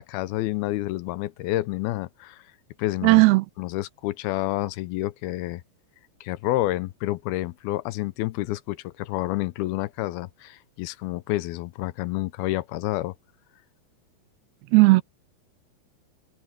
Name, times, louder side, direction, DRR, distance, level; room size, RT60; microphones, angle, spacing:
voice 1, 0.0-2.4 2.8-3.2 3.6-5.6 6.2-13.1, left 17 dB, 85° left, 2.6 m, -29 dB
voice 2, 3.0-3.4 14.7-15.0, right 23 dB, 90° right, 2.7 m, -15 dB
open air
omnidirectional pair, 4.4 m